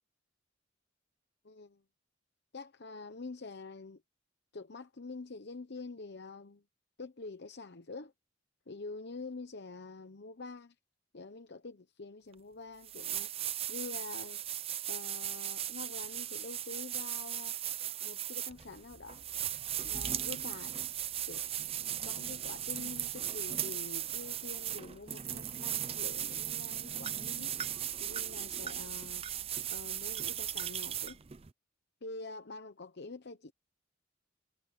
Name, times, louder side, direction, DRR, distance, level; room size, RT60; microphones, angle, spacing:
voice 1, 1.4-1.8 2.5-4.0 4.5-6.6 7.0-8.1 8.7-10.7 11.1-13.3 13.7-14.4 14.9-17.6 18.0-19.2 19.8-20.8 21.3-21.4 22.0-27.5 28.0-29.2 29.7-31.2 32.0-33.5, left 3 dB, 60° left, 0.9 m, -46 dB
sound 1, 12.3-12.4 12.8-31.5, right 10 dB, 30° right, 0.5 m, -37 dB
head